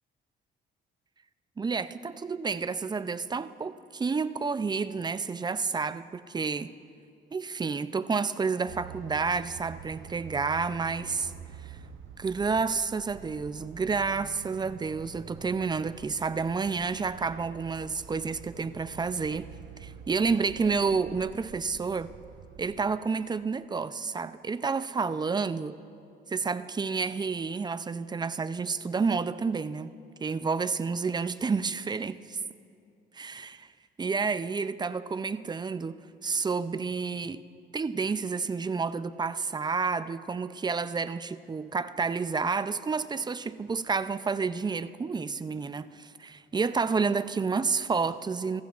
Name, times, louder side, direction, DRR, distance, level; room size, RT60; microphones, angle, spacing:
voice 1, 1.6-6.7 7.3-11.3 11.7-11.8 12.2-19.5 19.8-22.1 22.6-25.8 26.3-29.9 30.2-32.4 33.2-33.6 34.0-36.0 36.2-37.4 37.7-48.6, right 4 dB, 20° right, 0.4 m, -30 dB
sound 1, 8.7-22.9, right 8 dB, 80° right, 0.7 m, -47 dB
23.0 x 14.5 x 2.4 m
cardioid pair, 90°, 20 cm